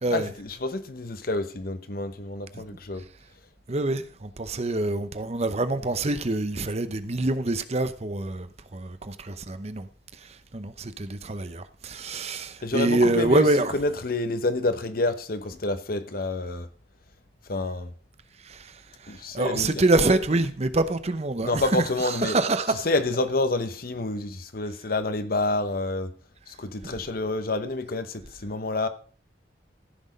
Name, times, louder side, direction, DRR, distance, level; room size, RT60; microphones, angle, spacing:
voice 1, 0.1-3.0 12.1-12.2 12.6-13.5 13.7-16.7 17.5-17.9 19.1-19.8 21.4-22.4 22.8-26.1 26.5-28.9, left 2 dB, 55° left, 1.0 m, -28 dB
voice 2, 3.7-9.9 10.5-13.7 18.5-18.7 19.0-22.9 26.8-26.9, right 2 dB, 35° right, 0.8 m, -26 dB
15.0 x 6.2 x 5.2 m
head